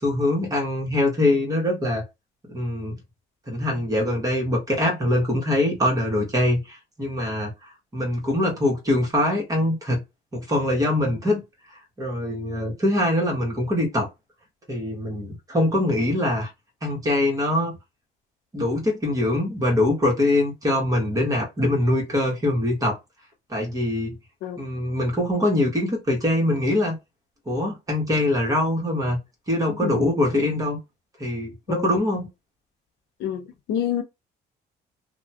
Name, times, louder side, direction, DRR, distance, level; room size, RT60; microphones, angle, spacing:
voice 1, 0.0-2.0 2.5-2.9 3.5-10.0 10.3-11.4 12.0-14.1 14.7-16.5 16.8-17.7 18.5-23.0 23.5-24.2 24.6-27.0 27.5-29.2 29.5-30.8 31.2-32.3, left 1 dB, 20° right, 1.3 m, -23 dB
voice 2, 33.2-34.0, left 10 dB, 85° left, 0.7 m, -27 dB
2.8 x 2.3 x 2.8 m
cardioid pair, 110°, 17 cm